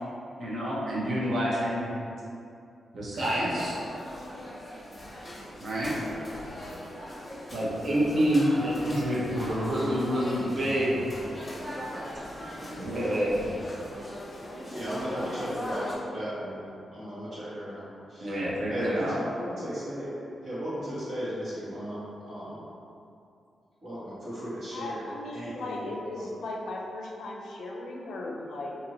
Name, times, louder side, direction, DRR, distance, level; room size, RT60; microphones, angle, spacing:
voice 1, 0.4-1.9 2.9-3.8 5.6-5.9 7.5-11.0 12.8-13.3 18.2-19.2, equal, 65° right, -7 dB, 0.8 m, -27 dB
sound 1, 3.1-15.9, equal, 20° left, 0.6 m, -39 dB
voice 2, 14.7-16.6 16.9-18.3 18.6-20.1 20.4-22.6 23.8-25.0 25.3-26.3, equal, 85° right, -12 dB, 1.4 m, -36 dB
voice 3, 24.7-28.9, left 2 dB, 75° left, -1 dB, 0.4 m, -37 dB
2.7 x 2.6 x 2.8 m, 2.6 s
wide cardioid pair, 125°, 0 cm